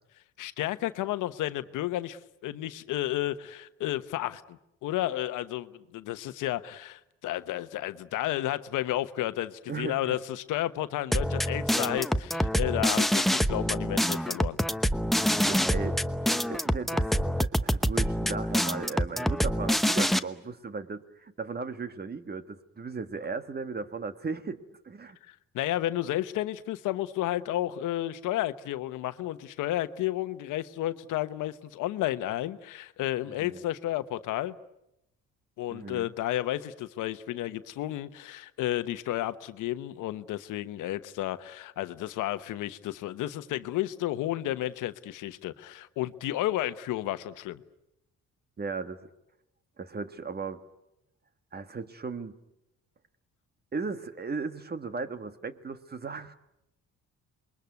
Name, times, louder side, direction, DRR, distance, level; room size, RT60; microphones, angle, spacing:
voice 1, 0.4-14.6 25.3-34.5 35.6-47.6, left 14 dB, 90° left, 13 dB, 1.1 m, -32 dB
voice 2, 9.7-10.2 15.3-25.2 33.3-33.6 35.7-36.1 48.6-49.0 49.8-50.6 51.5-52.4 53.7-56.3, right 4 dB, 30° right, 11 dB, 1.7 m, -37 dB
sound 1, 11.1-20.2, equal, ahead, 0.9 m, -26 dB
27.5 x 22.0 x 9.5 m, 0.87 s
cardioid pair, 90°, 30 cm